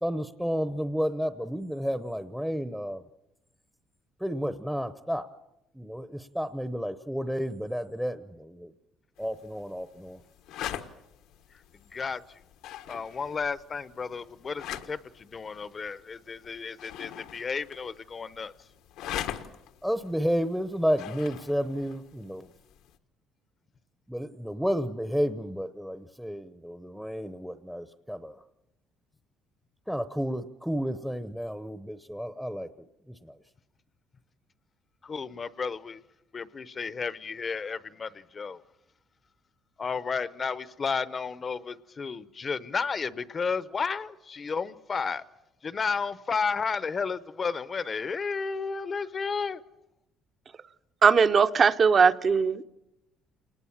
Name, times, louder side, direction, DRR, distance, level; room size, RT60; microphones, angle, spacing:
voice 1, 0.0-3.0 4.2-5.3 5.7-8.7 9.2-10.2 19.8-22.5 24.1-28.4 29.9-32.7 33.2-33.3, equal, ahead, 0.8 m, -31 dB
sound 1, 9.2-23.0, left 11 dB, 85° left, 1.5 m, -43 dB
voice 2, 12.9-18.5 35.0-36.0 36.3-38.6 39.8-45.2 45.6-49.6, left 5 dB, 30° left, 0.8 m, -32 dB
voice 3, 51.0-52.6, right 6 dB, 35° right, 0.8 m, -20 dB
28.0 x 20.0 x 7.3 m
cardioid pair, 125°, 0 cm